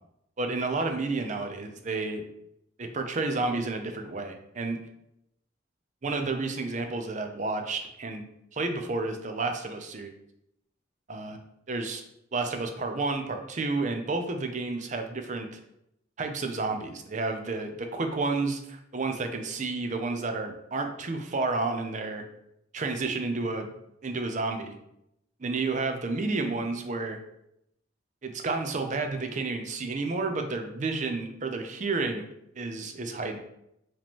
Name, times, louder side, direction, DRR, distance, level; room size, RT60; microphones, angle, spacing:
voice 1, 0.4-2.2 2.8-4.8 6.0-8.2 8.5-10.1 11.1-11.4 11.7-12.0 12.3-15.6 16.2-22.2 22.7-23.7 24.0-24.8 25.4-27.2 28.2-32.2 32.6-33.4, right 3 dB, 40° right, 5 dB, 0.5 m, -31 dB
4.9 x 3.0 x 3.5 m, 0.79 s
head